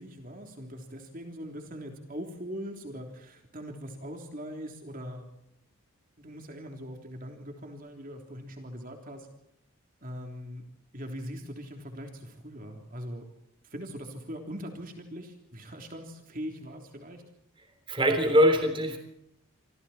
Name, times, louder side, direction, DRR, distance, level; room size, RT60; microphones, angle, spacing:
voice 1, 0.0-5.2 6.2-9.3 10.0-10.6 10.9-13.3 13.6-17.2, equal, 40° right, 3 dB, 3.4 m, -41 dB
voice 2, 17.9-19.0, equal, 25° right, 5 dB, 3.4 m, -22 dB
28.5 x 24.5 x 4.4 m, 0.76 s
head